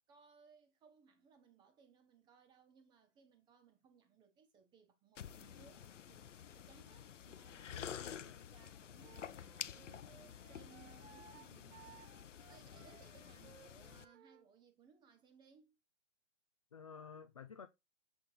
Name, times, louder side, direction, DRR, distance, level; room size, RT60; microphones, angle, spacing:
voice 1, 0.0-7.8 8.2-12.2 12.5-15.8, right 6 dB, 10° right, 1.0 m, -66 dB
sound 1, 5.2-14.0, left 9 dB, 80° left, 0.8 m, -50 dB
voice 2, 7.7-8.5 16.7-17.7, left 6 dB, 30° left, 0.4 m, -53 dB
Wind instrument woodwind instrument, 9.0-14.5, right 9 dB, 65° right, 1.0 m, -62 dB
7.4 x 3.6 x 4.0 m
hypercardioid pair, 150°, 36 cm